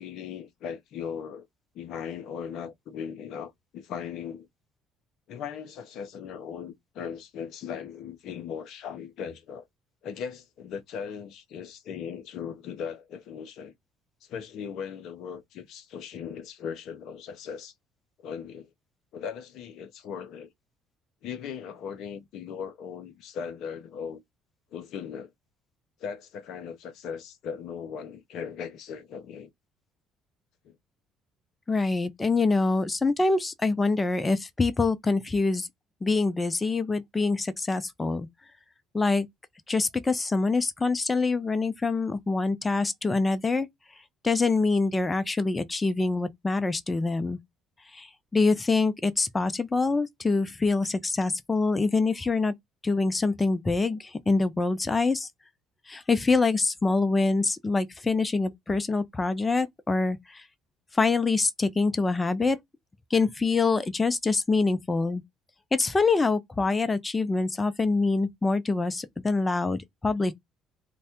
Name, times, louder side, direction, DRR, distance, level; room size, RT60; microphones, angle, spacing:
voice 1, 0.0-1.5 1.7-4.5 5.3-9.7 10.0-13.7 14.2-17.7 18.2-18.7 19.1-20.5 21.2-24.2 24.7-25.3 26.0-29.5 30.7-30.8, left 7 dB, 60° left, 0.6 m, -38 dB
voice 2, 31.7-35.7 36.0-38.3 38.9-39.3 39.7-43.7 44.2-47.4 47.9-52.5 52.8-55.3 55.9-60.4 60.9-62.6 63.1-65.2 65.7-70.3, left 3 dB, 20° left, 0.7 m, -25 dB
3.2 x 2.3 x 4.2 m
figure-of-eight pair, 50°, 0 cm